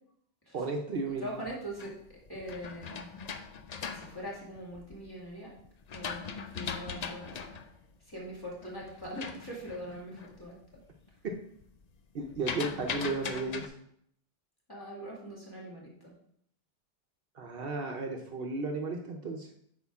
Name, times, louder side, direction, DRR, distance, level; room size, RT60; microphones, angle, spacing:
voice 1, 0.5-1.3 11.2-11.3 12.1-13.7 17.4-19.5, right 3 dB, 60° right, 3 dB, 0.9 m, -34 dB
voice 2, 1.1-1.9 2.3-3.1 3.8-5.5 5.9-7.6 8.1-10.8 14.7-16.1, equal, 20° left, -4 dB, 2.2 m, -42 dB
sound 1, 1.3-5.1 5.6-10.4 10.7-11.2 11.4-13.7, left 6 dB, 50° left, 0.5 m, -40 dB
8.3 x 5.1 x 3.5 m, 0.69 s
omnidirectional pair, 1.1 m